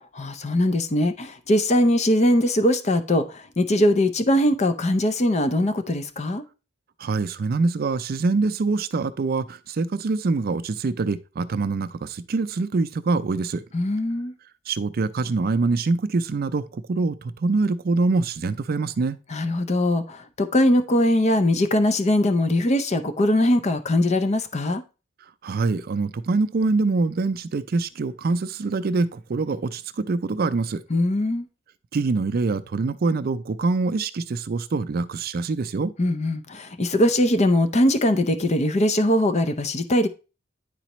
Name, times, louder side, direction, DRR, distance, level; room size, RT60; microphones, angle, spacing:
voice 1, 0.2-6.4 13.7-14.3 19.3-24.8 30.9-31.5 36.0-40.1, left 1 dB, 35° left, 0.6 m, -21 dB
voice 2, 7.0-13.6 14.7-19.2 25.4-30.8 31.9-35.9, right 3 dB, 50° right, 0.4 m, -24 dB
10.0 x 4.1 x 3.0 m
head